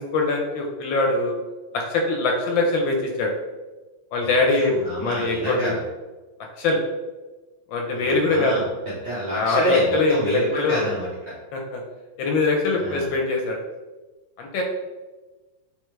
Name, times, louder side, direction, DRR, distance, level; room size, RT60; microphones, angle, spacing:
voice 1, 0.0-1.3 1.7-3.3 4.1-5.7 6.6-6.8 7.7-8.5 9.3-10.8 11.5-11.8 12.2-13.6 14.4-14.6, left 3 dB, 75° left, 1 dB, 1.2 m, -22 dB
voice 2, 4.5-5.8 7.9-8.6 9.0-11.3 12.8-13.1, right 1 dB, 65° right, -7 dB, 0.6 m, -27 dB
3.5 x 3.3 x 3.1 m, 1.2 s
omnidirectional pair, 2.4 m